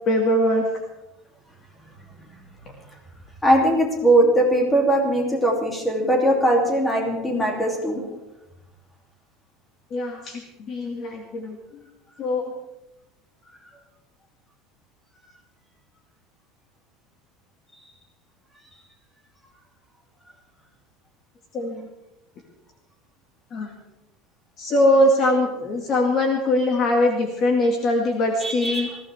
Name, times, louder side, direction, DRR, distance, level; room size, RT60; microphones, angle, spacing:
voice 1, 0.1-0.7 9.9-11.8 12.2-12.5 21.5-21.9 23.5-23.7 24.6-28.9, left 1 dB, 30° left, 2 dB, 2.0 m, -22 dB
voice 2, 3.4-8.0 28.4-29.0, right 1 dB, 5° left, 0 dB, 2.8 m, -20 dB
21.0 x 16.0 x 3.5 m, 0.92 s
cardioid pair, 165°, 0 cm